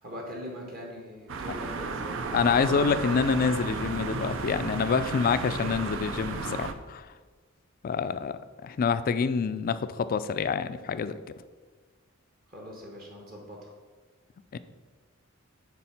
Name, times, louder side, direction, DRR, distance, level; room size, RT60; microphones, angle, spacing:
voice 1, 0.0-2.5 12.5-13.7, equal, 45° right, -1 dB, 1.3 m, -42 dB
sound 1, 1.3-6.7, right 4 dB, 60° right, 0.5 m, -33 dB
voice 2, 2.3-7.1 7.8-11.2 14.5-14.6, left 5 dB, 40° left, 13 dB, 0.3 m, -27 dB
6.9 x 4.1 x 5.8 m, 1.4 s
head